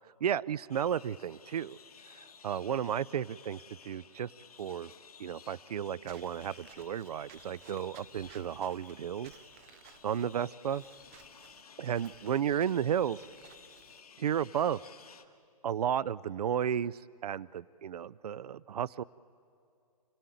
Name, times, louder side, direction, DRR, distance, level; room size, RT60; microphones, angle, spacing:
voice 1, 0.2-1.8 2.2-4.3 4.6-4.9 5.2-9.3 10.0-10.8 11.8-13.2 14.2-14.8 15.6-19.0, right 9 dB, 75° right, 21 dB, 0.5 m, -33 dB
sound 1, 0.7-15.2, left 6 dB, 70° left, 1.7 m, -55 dB
Walk footsteps / Squeak, 6.0-14.0, right 10 dB, 20° right, 0.6 m, -58 dB
28.5 x 18.0 x 9.2 m, 2.4 s
hypercardioid pair, 160°, 20 cm